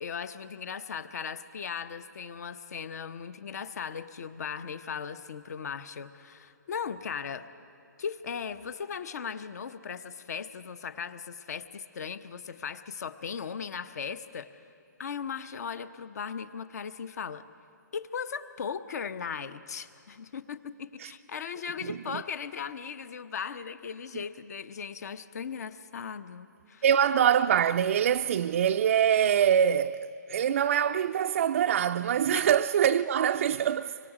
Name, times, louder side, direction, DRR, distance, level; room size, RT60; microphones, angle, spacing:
voice 1, 0.0-7.5 8.0-14.5 15.0-17.5 17.9-26.8 32.3-32.5, left 6 dB, 55° left, 0.9 m, -38 dB
voice 2, 21.8-22.2 26.8-34.0, right 9 dB, 45° right, 0.4 m, -24 dB
25.0 x 25.0 x 5.0 m
hypercardioid pair, 150°, 10 cm